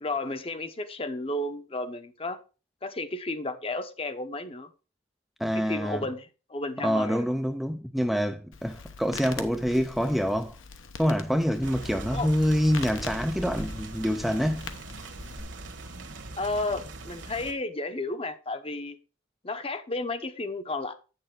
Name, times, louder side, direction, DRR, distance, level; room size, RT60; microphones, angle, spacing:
voice 1, 0.0-2.4 2.8-4.7 5.5-7.3 12.1-12.3 16.4-19.0 19.4-20.9, left 2 dB, 30° left, 0.7 m, -33 dB
voice 2, 5.4-6.0 6.8-10.6 11.0-14.7, equal, ahead, 0.4 m, -26 dB
Crackle, 8.5-15.4, left 5 dB, 75° left, 0.9 m, -43 dB
sound 1, 11.6-17.5, right 2 dB, 60° right, 1.4 m, -40 dB
8.9 x 6.8 x 3.7 m
head